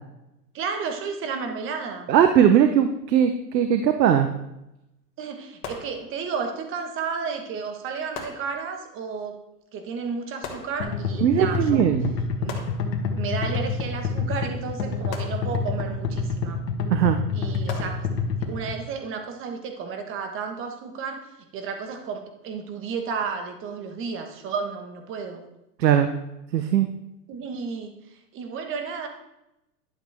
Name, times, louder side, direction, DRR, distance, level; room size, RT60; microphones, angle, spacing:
voice 1, 0.5-2.1 5.2-9.3 9.7-11.9 12.4-12.6 13.1-16.6 17.3-18.1 18.4-21.2 21.5-25.4 27.3-29.1, right 5 dB, 25° right, 5 dB, 1.3 m, -32 dB
voice 2, 2.1-4.3 11.2-12.1 16.9-17.2 25.8-26.1 26.5-26.9, right 9 dB, 85° right, 7 dB, 0.9 m, -19 dB
sound 1, 5.6-6.6 8.1-9.0 10.4-11.3 12.5-13.4 15.1-16.0 17.7-18.6, left 5 dB, 40° left, 2.0 m, -40 dB
sound 2, 10.8-18.8, left 5 dB, 80° left, 1.8 m, -27 dB
11.5 x 7.4 x 3.5 m, 0.89 s
hypercardioid pair, 140°, 49 cm